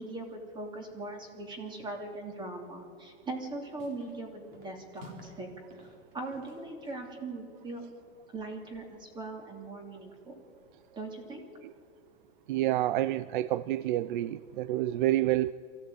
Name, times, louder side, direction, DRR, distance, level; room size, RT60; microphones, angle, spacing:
voice 1, 0.0-5.5 5.8-5.9 6.1-7.9 8.3-10.4 10.9-11.4, right 2 dB, 15° right, 3 dB, 2.9 m, -40 dB
sound 1, 3.2-3.5 3.8-4.2 4.5-5.4 5.7-7.1, equal, 35° right, 3.9 m, -52 dB
voice 2, 12.5-15.5, right 14 dB, 50° right, 17 dB, 0.5 m, -28 dB
23.5 x 16.0 x 9.1 m, 2.3 s
supercardioid pair, 170°, 33 cm